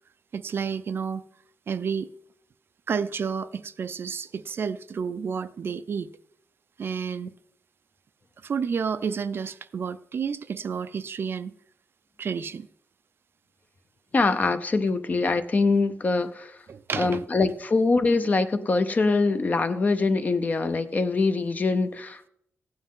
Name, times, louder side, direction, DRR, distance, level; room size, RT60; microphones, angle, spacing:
voice 1, 0.3-1.2 1.7-2.1 2.9-6.1 6.8-7.3 8.4-11.5 12.2-12.7 16.7-17.3, right 6 dB, 50° right, 0.4 m, -30 dB
voice 2, 14.1-16.5 17.0-22.3, left 3 dB, 30° left, 0.6 m, -23 dB
15.5 x 9.7 x 3.7 m
wide cardioid pair, 160°, 5 cm